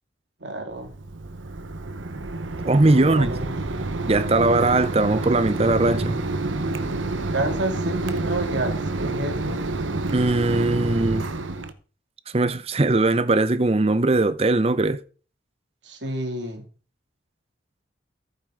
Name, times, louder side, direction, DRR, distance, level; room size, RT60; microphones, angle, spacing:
voice 1, 0.4-0.9 2.7-3.6 7.3-9.6 15.8-16.6, right 1 dB, 70° right, 2.4 m, -29 dB
Mechanisms, 0.7-11.7, right 2 dB, 85° right, 1.0 m, -28 dB
voice 2, 2.6-3.3 4.1-6.2 10.1-11.2 12.3-15.0, right 2 dB, 30° right, 0.6 m, -20 dB
14.0 x 8.0 x 3.8 m
head